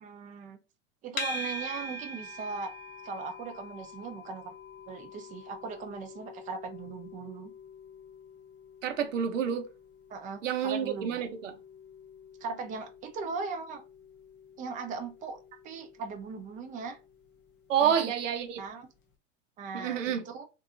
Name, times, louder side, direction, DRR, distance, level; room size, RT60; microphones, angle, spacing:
voice 1, 0.0-0.6 1.0-2.7 3.0-4.5 4.9-7.5 10.1-11.2 12.4-13.8 14.6-15.4 15.6-17.0 17.8-18.1 18.6-18.9 19.6-20.4, right 4 dB, 20° right, 0.5 m, -39 dB
sound 1, 1.2-18.4, left 1 dB, 30° left, 0.6 m, -45 dB
voice 2, 8.8-9.7 10.4-11.6 17.7-18.6 19.7-20.2, right 8 dB, 75° right, 0.7 m, -28 dB
2.7 x 2.3 x 2.5 m
hypercardioid pair, 95°, 38 cm